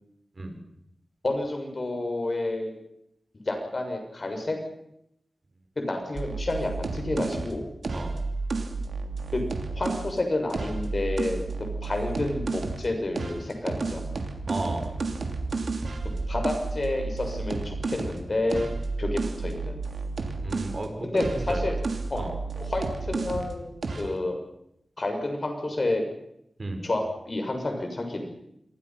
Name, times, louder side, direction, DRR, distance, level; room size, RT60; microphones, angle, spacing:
voice 1, 1.2-2.8 3.3-4.6 5.8-7.7 9.3-9.4 9.7-11.4 11.8-14.1 16.3-18.7 19.0-19.8 21.0-21.8 22.1-22.3 22.6-24.4 25.0-26.0 26.8-28.3, left 2 dB, 45° left, 3 dB, 6.5 m, -29 dB
sound 1, 6.2-10.1 10.5-12.9 13.2-20.8 21.2-23.5 23.8-24.1, right 3 dB, 75° right, 3.0 m, -31 dB
voice 2, 14.5-14.9 20.4-21.7 22.2-22.3 26.6-26.8, right 2 dB, 45° right, 5 dB, 5.2 m, -33 dB
27.0 x 22.0 x 6.0 m, 0.79 s
wide cardioid pair, 85°, 0 cm